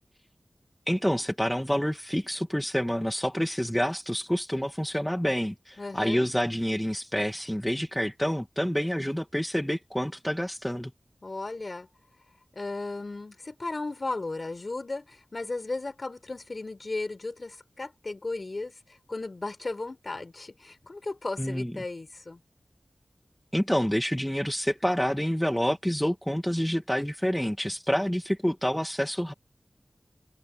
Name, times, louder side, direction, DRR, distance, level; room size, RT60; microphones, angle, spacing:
voice 1, 0.9-10.9 21.4-21.7 23.5-29.3, equal, 5° left, 1.3 m, -28 dB
voice 2, 5.8-6.3 11.2-11.9 12.5-18.8 19.1-22.4, left 2 dB, 50° left, 4.0 m, -35 dB
wide cardioid pair, 85°, 0 cm